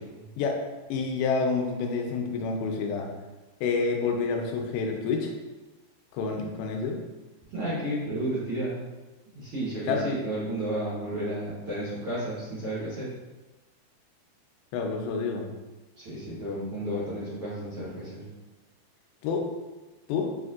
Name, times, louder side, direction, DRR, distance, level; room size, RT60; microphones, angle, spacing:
voice 1, 0.9-3.1 3.6-5.3 6.1-7.0 9.9-10.1 14.7-15.5 19.2-19.5 20.1-20.3, left 4 dB, 85° left, 3 dB, 2.4 m, -28 dB
voice 2, 7.5-8.7 9.3-13.1 16.0-18.2, right 1 dB, 75° right, -10 dB, 1.3 m, -32 dB
6.9 x 2.5 x 2.4 m, 1.1 s
omnidirectional pair, 4.3 m